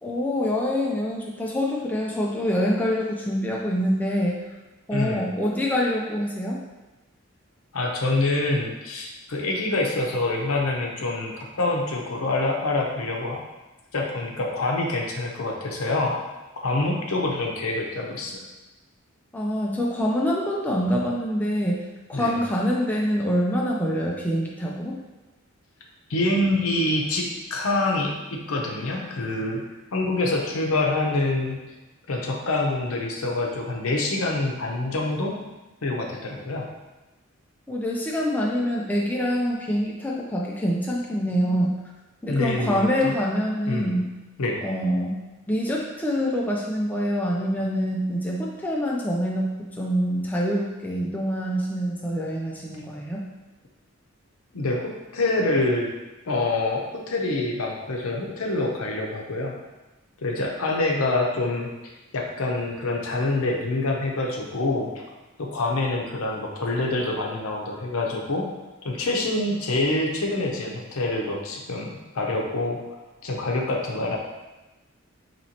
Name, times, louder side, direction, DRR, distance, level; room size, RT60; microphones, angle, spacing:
voice 1, 0.0-4.4 4.9-6.6 19.3-21.8 22.1-25.0 37.7-41.8 42.2-44.1 44.6-45.1 45.5-53.3, equal, 10° left, -3 dB, 0.3 m, -25 dB
voice 2, 4.9-5.3 7.7-13.4 13.9-16.2 16.6-18.4 22.1-22.4 26.1-29.6 29.9-31.6 32.1-35.4 35.8-36.6 42.3-43.1 43.7-44.0 44.4-44.6 54.5-55.9 56.3-59.6 60.2-61.7 62.1-64.9 65.4-68.5 68.8-72.8 73.2-74.2, left 2 dB, 80° left, 0 dB, 0.6 m, -26 dB
4.2 x 2.9 x 2.8 m, 1.1 s
head